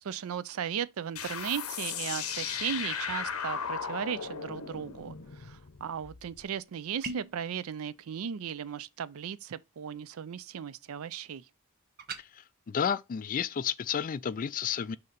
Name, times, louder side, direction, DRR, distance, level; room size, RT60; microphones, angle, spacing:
voice 1, 0.0-11.5, right 8 dB, 70° right, 0.4 m, -36 dB
sound 1, 1.2-6.4, left 7 dB, 70° left, 0.8 m, -36 dB
sound 2, 7.0-7.4 12.0-12.2, right 3 dB, 45° right, 0.8 m, -38 dB
voice 2, 12.7-15.0, left 7 dB, 40° left, 0.3 m, -31 dB
6.5 x 2.8 x 5.1 m
head